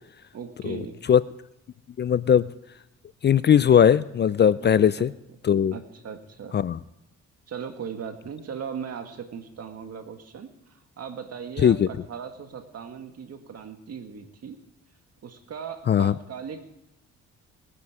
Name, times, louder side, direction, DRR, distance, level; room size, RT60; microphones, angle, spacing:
voice 1, 0.3-1.0 4.6-5.1 5.7-6.6 7.5-14.6 15.2-16.6, right 7 dB, 55° right, 7 dB, 1.8 m, -38 dB
voice 2, 2.0-2.5 3.2-5.1 5.4-5.7 6.5-6.8 11.6-11.9 15.9-16.1, left 8 dB, 35° left, 17 dB, 0.4 m, -19 dB
19.5 x 9.7 x 4.8 m, 0.89 s
cardioid pair, 90°, 30 cm